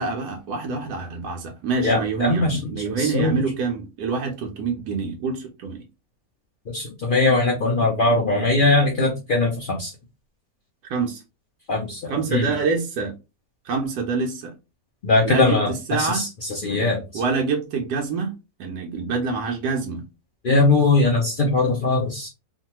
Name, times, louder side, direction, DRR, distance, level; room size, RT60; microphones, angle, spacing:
voice 1, 0.0-5.8 10.9-11.2 12.1-13.1 13.6-14.5 15.2-16.2 17.1-18.3 18.6-20.0, right 4 dB, 85° right, 1.2 m, -26 dB
voice 2, 1.8-2.6 3.0-3.4 6.7-9.9 11.7-12.5 15.0-17.2 20.4-22.3, left 3 dB, 85° left, 0.4 m, -21 dB
3.1 x 2.2 x 2.8 m
omnidirectional pair, 1.7 m